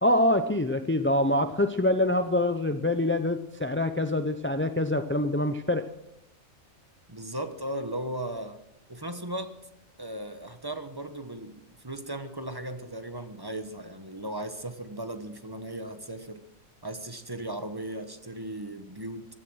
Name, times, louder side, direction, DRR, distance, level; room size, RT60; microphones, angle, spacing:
voice 1, 0.0-5.9, left 1 dB, 20° left, 9 dB, 0.3 m, -25 dB
voice 2, 7.1-8.6 8.9-9.6 10.0-16.4 16.8-19.3, right 1 dB, 20° right, 8 dB, 1.1 m, -37 dB
16.0 x 13.5 x 6.3 m, 0.85 s
omnidirectional pair, 1.4 m